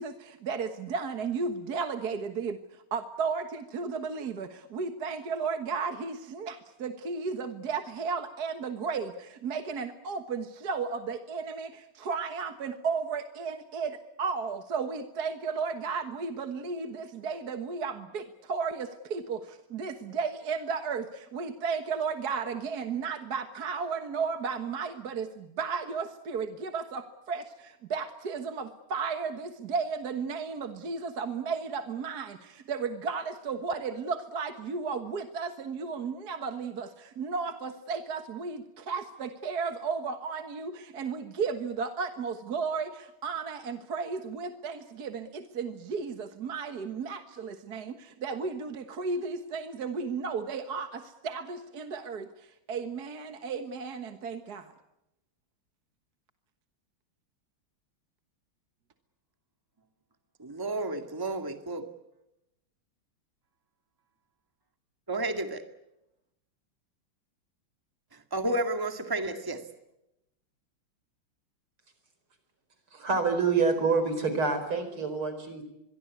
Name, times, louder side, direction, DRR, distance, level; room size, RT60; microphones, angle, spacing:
voice 1, 0.0-54.7, right 5 dB, 50° right, 1.8 m, -34 dB
voice 2, 60.4-61.9 65.1-65.6 68.3-69.6, right 2 dB, 10° right, 1.9 m, -31 dB
voice 3, 72.9-75.6, right 4 dB, 80° right, 5.5 m, -27 dB
25.0 x 23.0 x 8.3 m
omnidirectional pair, 2.3 m